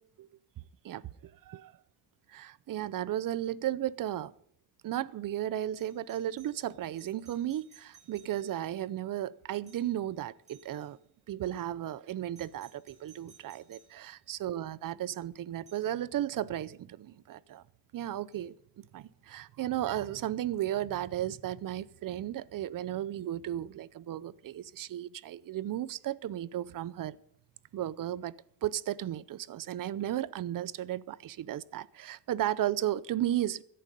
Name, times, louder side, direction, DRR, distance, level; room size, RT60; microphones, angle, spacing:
voice 1, 0.8-1.7 2.3-4.3 4.8-11.0 11.3-17.6 17.9-27.2 27.7-28.3 28.6-33.6, right 12 dB, 50° right, 0.6 m, -34 dB
Doorbell, 5.8-8.7 9.6-10.0 10.4-11.0 12.3-14.0 15.7-15.9 18.3-18.4, right 6 dB, 15° right, 5.1 m, -61 dB
16.0 x 11.0 x 5.3 m
cardioid pair, 140°, 44 cm